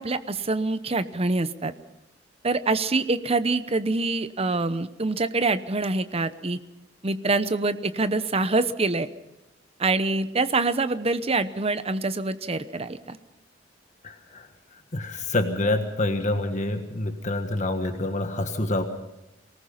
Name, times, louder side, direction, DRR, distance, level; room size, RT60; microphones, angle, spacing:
voice 1, 0.0-1.7 2.4-6.6 7.0-9.1 9.8-13.2, right 3 dB, 35° right, 12 dB, 0.8 m, -25 dB
voice 2, 14.0-18.8, left 2 dB, 40° left, 6 dB, 1.5 m, -27 dB
23.5 x 19.0 x 5.8 m, 0.92 s
head